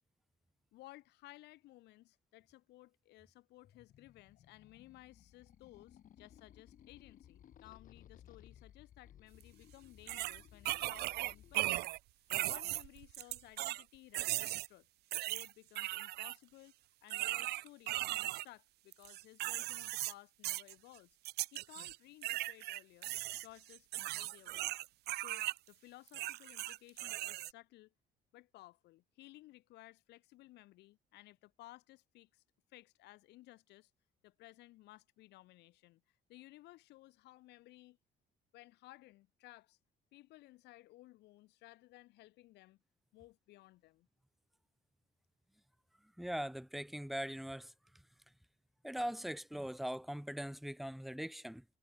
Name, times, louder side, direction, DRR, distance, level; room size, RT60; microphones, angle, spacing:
voice 1, 0.7-11.9 12.4-14.9 15.3-16.7 17.0-21.2 21.5-23.1 23.4-24.8 25.1-27.9 28.3-32.4 32.7-33.9 34.2-36.0 36.3-38.0 38.5-39.8 40.1-42.8 43.1-44.1, left 18 dB, 85° left, 4.3 m, -58 dB
sound 1, 3.6-11.5, left 10 dB, 50° left, 1.8 m, -60 dB
sound 2, 9.4-9.5 10.1-12.0 12.3-13.8 14.1-14.7 15.1-16.4 17.1-18.4 18.9-20.1 20.4-20.7 21.2-22.0 22.2-25.6 26.1-27.5, right 17 dB, 75° right, 0.6 m, -38 dB
voice 2, 46.2-47.7 48.8-51.6, equal, ahead, 0.7 m, -41 dB
cardioid pair, 110°, 17 cm